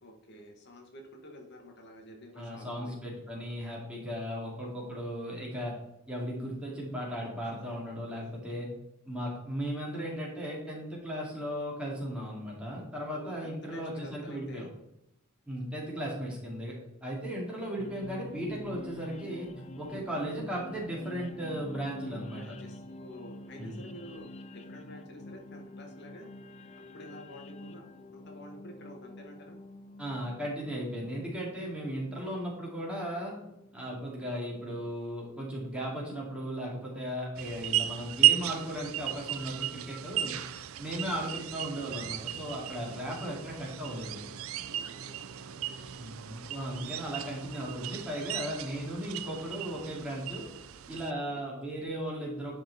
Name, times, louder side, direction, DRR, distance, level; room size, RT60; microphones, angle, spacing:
voice 1, 0.0-3.0 13.1-14.7 22.3-24.3 24.5-26.3 26.9-27.9 28.1-29.6 31.4-31.7 41.0-41.2 44.7-46.1 51.0-51.4, left 1 dB, 55° left, 2 dB, 1.2 m, -49 dB
voice 2, 2.4-5.8 6.1-8.7 9.1-14.7 15.5-16.7 17.0-19.5 19.8-22.4 23.6-23.8 30.0-33.3 33.7-40.4 40.8-44.2 46.0-50.5 50.9-52.6, equal, 5° right, -4 dB, 2.4 m, -36 dB
sound 1, 17.8-34.9, left 1 dB, 35° left, 0.5 m, -47 dB
sound 2, 37.4-51.1, right 13 dB, 90° right, 0.5 m, -34 dB
10.5 x 4.4 x 4.1 m, 0.83 s
head